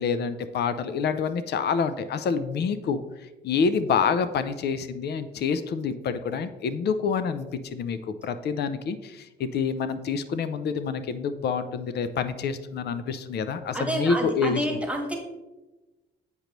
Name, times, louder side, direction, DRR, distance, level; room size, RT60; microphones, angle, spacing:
voice 1, 0.0-3.0 3.4-14.6, left 5 dB, 55° left, 11 dB, 0.5 m, -27 dB
voice 2, 13.7-15.2, right 1 dB, 5° right, 2 dB, 1.3 m, -29 dB
8.0 x 5.2 x 3.0 m, 1.1 s
cardioid pair, 90°, 20 cm